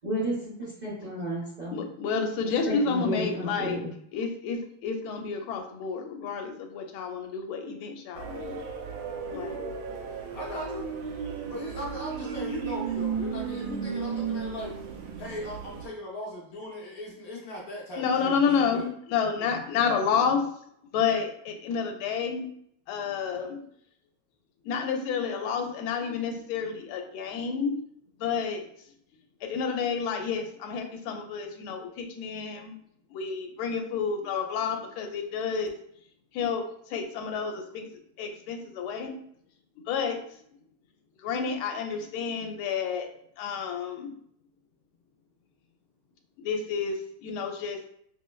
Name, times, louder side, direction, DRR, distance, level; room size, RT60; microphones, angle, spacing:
voice 1, 0.0-1.8 2.7-3.9, equal, 40° right, -7 dB, 0.6 m, -32 dB
voice 2, 1.7-3.8 4.1-8.6 9.3-9.6 18.0-20.4 20.9-22.5 22.9-23.6 24.6-27.8 28.2-28.7 29.4-32.8 33.1-35.7 36.3-37.9 38.2-39.2 39.9-40.2 41.2-43.1 43.4-44.1 46.4-47.9, left 6 dB, 90° left, 4 dB, 1.4 m, -30 dB
sound 1, 8.2-15.9, right 6 dB, 85° right, 1.4 m, -34 dB
voice 3, 10.3-10.9 11.5-14.7 15.2-18.9 19.4-19.6, left 1 dB, 65° left, -2 dB, 0.9 m, -38 dB
5.8 x 2.1 x 2.2 m, 0.67 s
omnidirectional pair, 2.2 m